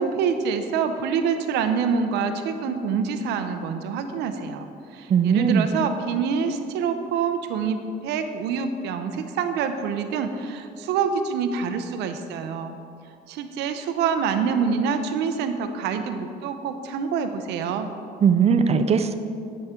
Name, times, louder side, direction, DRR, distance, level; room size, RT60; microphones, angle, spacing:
voice 1, 0.0-12.8 13.3-17.9, right 6 dB, 85° right, 8 dB, 0.7 m, -26 dB
voice 2, 5.1-5.7 18.2-19.1, right 6 dB, 40° right, 10 dB, 0.6 m, -19 dB
10.5 x 7.2 x 3.7 m, 2.5 s
cardioid pair, 110°, 17 cm